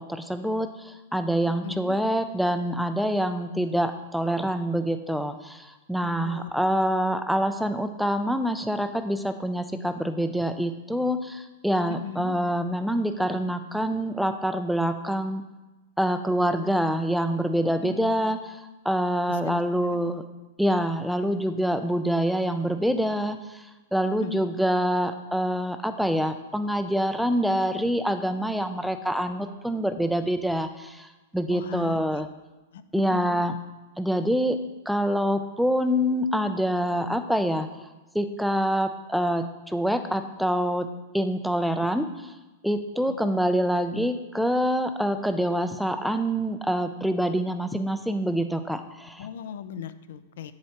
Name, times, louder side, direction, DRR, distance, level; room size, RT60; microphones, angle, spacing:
voice 1, 0.0-15.4 16.0-18.6 18.8-20.2 20.6-23.6 23.9-32.3 32.9-33.5 34.0-34.6 34.9-37.7 38.1-40.9 41.1-42.3 42.6-49.3, equal, ahead, 8 dB, 0.3 m, -26 dB
voice 2, 1.6-2.0 6.0-6.6 11.9-12.4 17.7-18.1 19.3-19.6 19.9-20.0 24.2-24.5 31.5-32.0 32.7-32.8 33.1-33.5 43.1-43.2 49.2-50.5, left 7 dB, 65° left, 13 dB, 0.5 m, -38 dB
8.1 x 7.7 x 2.9 m, 1.1 s
supercardioid pair, 170°, 0 cm